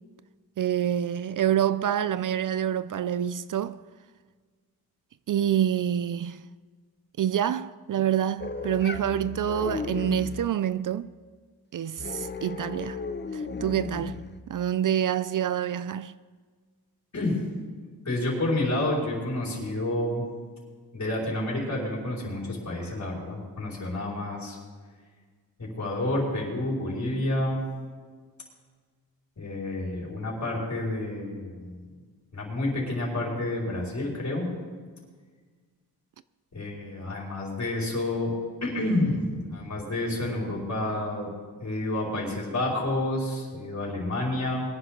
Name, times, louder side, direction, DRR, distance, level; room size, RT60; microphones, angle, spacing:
voice 1, 0.6-3.8 5.3-6.5 7.2-11.1 11.7-13.0 13.3-16.1, right 10 dB, 55° right, 0.5 m, -27 dB
sound 1, 8.4-10.5 12.0-14.4, left 4 dB, 25° left, 0.9 m, -35 dB
voice 2, 18.0-20.2 20.9-24.6 25.6-27.6 29.4-31.9 32.3-34.5 36.5-38.3 38.6-39.2 39.5-41.3 41.6-44.6, left 1 dB, 45° left, 5.3 m, -29 dB
22.5 x 10.5 x 3.9 m
cardioid pair, 85°, 38 cm